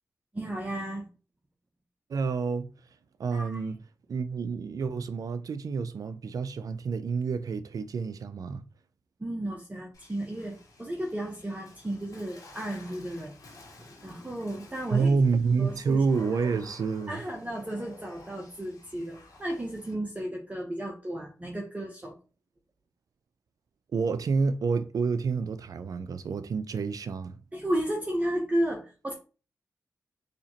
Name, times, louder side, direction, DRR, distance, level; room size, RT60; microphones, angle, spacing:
voice 1, 0.3-1.0 3.3-3.6 9.2-13.3 13.8-15.1 15.6-16.0 16.4-16.5 17.1-22.2 27.5-29.1, right 1 dB, 25° right, 1.0 m, -33 dB
voice 2, 2.1-2.7 3.2-3.8 4.1-8.6 14.9-17.2 23.9-27.4, right 5 dB, 70° right, 0.5 m, -28 dB
Water / Splash splatter, 9.9-19.9, left 2 dB, 65° left, 1.5 m, -52 dB
4.0 x 2.9 x 2.9 m
supercardioid pair, 40°, 6 cm